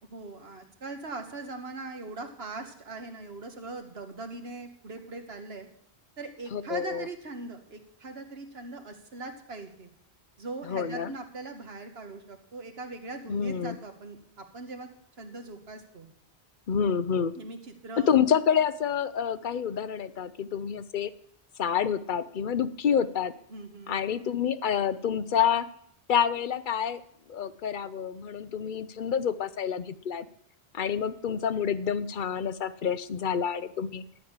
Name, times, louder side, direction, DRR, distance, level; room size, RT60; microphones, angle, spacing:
voice 1, 0.1-5.7 6.2-9.9 10.4-14.9 15.2-16.1 17.3-17.6 17.8-18.1 23.5-24.0, right 3 dB, 65° right, 6 dB, 1.8 m, -40 dB
voice 2, 6.5-7.1 10.7-11.1 13.3-13.8 16.7-17.3 18.1-21.1 21.6-23.3 23.9-25.7 26.1-27.0 27.3-30.3 30.7-34.0, left 7 dB, 55° left, 14 dB, 0.8 m, -28 dB
13.0 x 6.4 x 8.9 m, 0.67 s
omnidirectional pair, 1.1 m